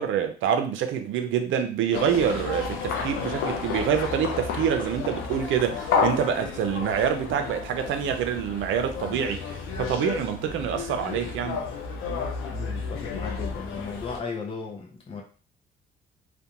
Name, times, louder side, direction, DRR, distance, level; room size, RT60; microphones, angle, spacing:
voice 1, 0.0-9.4 9.8-11.6, right 8 dB, 75° right, 0.5 m, -26 dB
sound 1, 1.9-14.2, left 5 dB, 90° left, 0.5 m, -31 dB
voice 2, 12.5-15.2, left 4 dB, 25° left, 0.6 m, -36 dB
2.5 x 2.1 x 2.8 m
cardioid pair, 90°, 20 cm